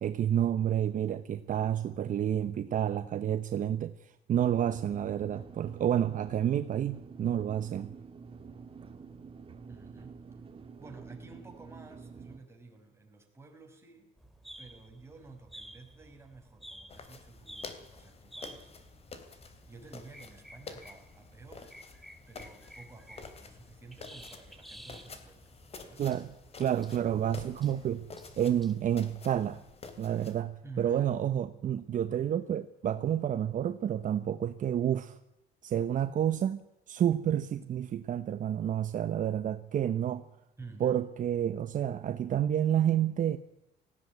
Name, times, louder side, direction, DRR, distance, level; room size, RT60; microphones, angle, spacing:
voice 1, 0.0-7.9 26.0-26.3 26.6-28.1 28.4-29.6 30.0-35.2 35.6-36.6 36.9-40.2 40.8-43.4, right 10 dB, 50° right, 10 dB, 1.0 m, -29 dB
sound 1, 4.4-12.4, right 5 dB, 35° right, 2.7 m, -48 dB
voice 2, 9.7-10.2 10.8-14.1 14.6-18.7 19.7-21.7 22.3-26.0 30.6-31.1 40.6-41.0, right 3 dB, 15° right, 2 dB, 5.9 m, -51 dB
sound 2, 14.2-28.8, equal, ahead, 2.5 m, -53 dB
sound 3, 16.9-30.4, left 4 dB, 35° left, 3.2 m, -50 dB
19.0 x 16.0 x 9.6 m, 0.89 s
cardioid pair, 110°, 17 cm